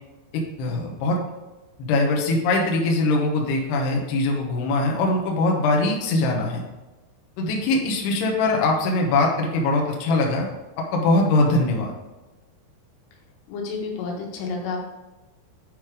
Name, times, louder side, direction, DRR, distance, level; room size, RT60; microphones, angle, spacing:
voice 1, 0.3-1.2 1.8-6.6 7.4-10.5 10.8-11.9, left 2 dB, 70° left, -1 dB, 2.9 m, -22 dB
voice 2, 13.5-14.8, left 4 dB, 85° left, 0 dB, 4.0 m, -30 dB
9.1 x 5.2 x 4.9 m, 1.1 s
omnidirectional pair, 5.5 m